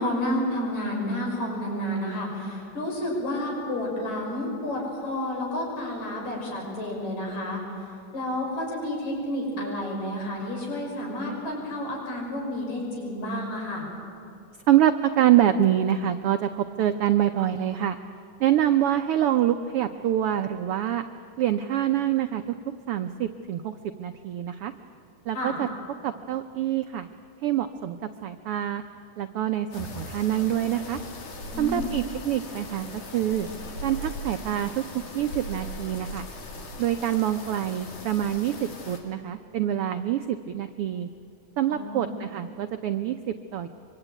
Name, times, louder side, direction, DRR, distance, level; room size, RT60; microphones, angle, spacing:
voice 1, 0.0-7.6 8.1-13.9 25.3-25.6 31.5-31.9 41.7-42.1, left 1 dB, 70° left, 0 dB, 7.3 m, -30 dB
voice 2, 14.7-18.0 18.4-21.0 21.4-22.5 22.9-23.7 24.0-24.7 25.3-25.7 26.0-27.1 27.4-28.8 29.2-31.0 31.6-33.5 33.8-36.3 36.8-41.1 41.6-43.7, right 11 dB, 80° right, 8 dB, 1.3 m, -25 dB
sound 1, 29.7-39.0, left 1 dB, 90° left, 4.2 m, -39 dB
24.5 x 24.0 x 9.1 m, 2.6 s
omnidirectional pair, 3.4 m